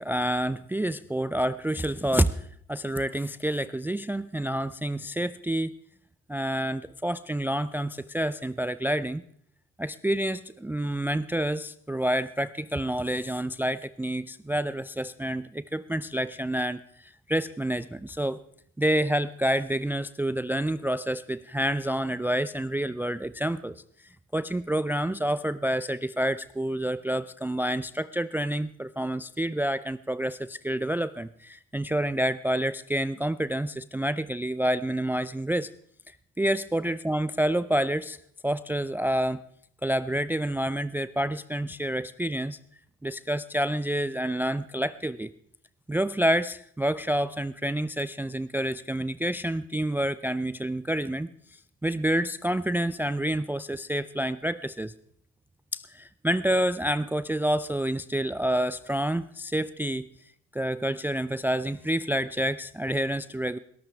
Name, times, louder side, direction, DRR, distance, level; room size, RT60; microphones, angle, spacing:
voice 1, 0.0-5.7 6.3-9.2 9.8-18.4 18.8-23.8 24.3-35.7 36.4-38.2 38.4-39.4 39.8-42.6 43.0-45.3 45.9-51.3 51.8-54.9 55.7-60.1 60.5-63.6, right 1 dB, 5° right, 15 dB, 0.4 m, -28 dB
21.5 x 12.5 x 3.4 m, 0.65 s
hypercardioid pair, 55°, 33 cm